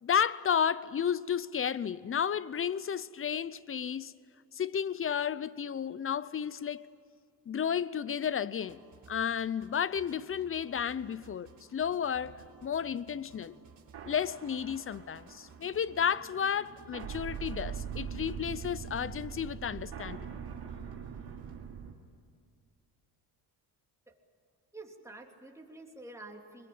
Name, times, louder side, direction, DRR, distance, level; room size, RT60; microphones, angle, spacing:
voice 1, 0.0-4.1 4.5-6.9 7.5-8.8 9.1-13.6 14.0-20.4, left 8 dB, 30° left, 0.7 m, -32 dB
sound 1, 8.7-21.6, right 5 dB, 50° right, 5.3 m, -57 dB
sound 2, 12.2-21.9, right 7 dB, 70° right, 3.3 m, -43 dB
voice 2, 24.7-26.7, right 2 dB, 5° right, 3.1 m, -48 dB
22.5 x 22.0 x 8.9 m
cardioid pair, 110°, 40 cm